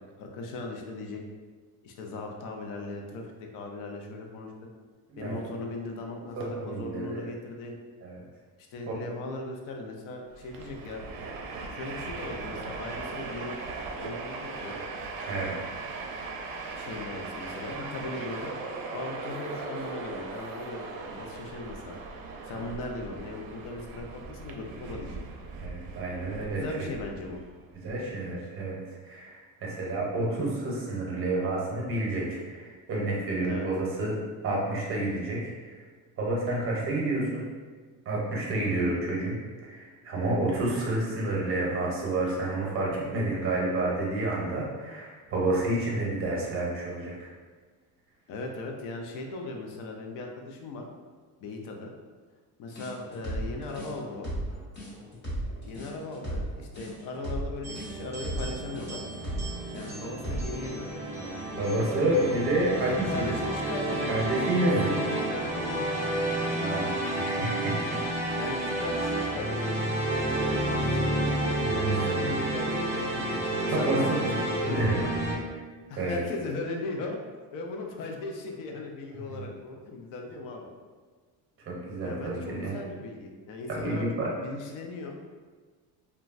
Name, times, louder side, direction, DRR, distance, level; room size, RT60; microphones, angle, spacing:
voice 1, 0.2-1.2 1.8-4.5 5.2-6.4 6.6-7.7 8.7-11.0 11.7-13.6 13.9-14.8 16.8-18.5 18.9-22.0 22.5-25.2 26.5-27.4 33.5-33.7 48.3-50.8 51.4-51.9 52.6-54.3 55.6-59.0 59.7-61.9 62.8-64.2 64.7-65.9 66.4-66.6 68.4-69.8 70.2-71.1 71.8-74.3 74.6-75.1 75.9-77.2 77.5-80.7 82.0-84.1 84.4-85.2, left 3 dB, 60° left, 2 dB, 0.5 m, -38 dB
voice 2, 5.1-5.4 6.4-7.3 8.0-8.2 8.9-9.0 15.3-15.5 25.6-26.6 27.7-34.1 34.4-35.8 36.2-37.5 38.0-47.3 61.6-63.4 63.9-64.9 66.6-68.0 71.6-72.3 73.1-73.2 73.7-74.3 74.6-75.0 76.0-76.2 79.3-79.4 81.7-82.7 83.7-84.3, right 2 dB, 35° right, -3 dB, 0.8 m, -29 dB
Train, 10.3-27.9, right 3 dB, 70° right, 0.5 m, -39 dB
sound 1, 52.7-60.6, right 1 dB, 30° left, 1.0 m, -35 dB
sound 2, 57.6-75.3, right 1 dB, 10° right, 0.4 m, -30 dB
3.0 x 2.2 x 2.4 m, 1.5 s
cardioid pair, 160°, 37 cm